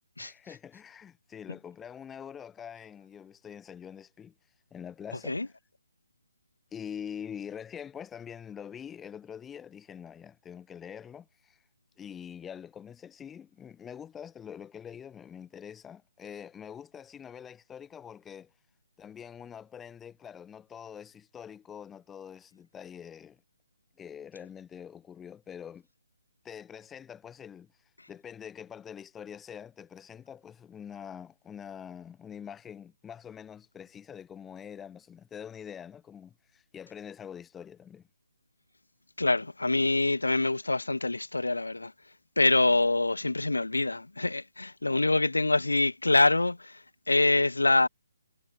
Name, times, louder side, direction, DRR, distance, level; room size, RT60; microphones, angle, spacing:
voice 1, 0.2-4.3 4.7-5.5 6.7-11.6 12.0-18.5 19.0-23.4 24.0-25.9 26.4-27.7 28.1-38.1, left 8 dB, 10° left, 0.6 m, -45 dB
voice 2, 39.2-41.9 42.4-47.9, left 2 dB, 75° left, 0.5 m, -25 dB
figure-of-eight pair, 140°, 0 cm